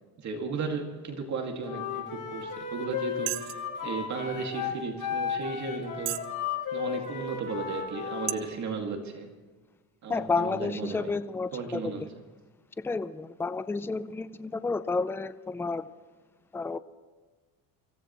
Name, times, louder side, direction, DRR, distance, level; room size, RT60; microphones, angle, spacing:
voice 1, 0.2-6.2 6.7-9.3 10.0-11.2 11.5-12.2, right 4 dB, 45° right, 2 dB, 2.3 m, -35 dB
Wind instrument woodwind instrument, 1.6-8.4, left 7 dB, 50° left, 6.0 m, -34 dB
sound 1, 2.5-2.6 3.3-3.7 4.4-4.5 5.1-5.2 6.0-6.3 6.9-7.0 7.7-7.9 8.3-8.4, right 20 dB, 90° right, 0.7 m, -33 dB
voice 2, 10.1-12.1 12.8-15.9 16.5-16.8, left 4 dB, 5° left, 13 dB, 0.5 m, -31 dB
25.5 x 16.0 x 3.1 m, 1.4 s
cardioid pair, 115°, 40 cm